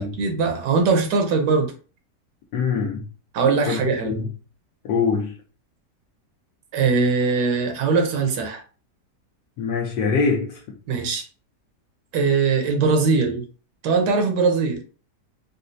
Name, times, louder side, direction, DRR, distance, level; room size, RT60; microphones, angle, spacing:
voice 1, 0.2-1.7 3.3-4.2 6.7-8.6 10.9-11.2 12.1-13.4 13.8-14.8, right 4 dB, 80° right, 1.3 m, -21 dB
voice 2, 2.5-3.1 3.7-4.3 4.8-5.3 9.6-10.6, left 5 dB, 75° left, 1.2 m, -23 dB
4.0 x 2.1 x 2.6 m
omnidirectional pair, 1.8 m